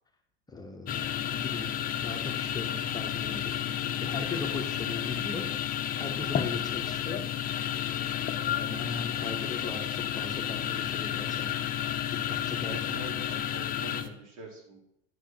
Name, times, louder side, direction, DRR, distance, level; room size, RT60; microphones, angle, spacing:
voice 1, 0.5-1.7 2.0-5.5 6.0-7.3 8.4-13.0, left 3 dB, 15° left, 1 dB, 1.1 m, -39 dB
sound 1, 0.9-14.1, left 10 dB, 30° left, 0.7 m, -31 dB
voice 2, 12.7-14.8, right 3 dB, 60° right, -1 dB, 3.9 m, -44 dB
10.5 x 5.0 x 6.0 m, 0.77 s
supercardioid pair, 140°, 29 cm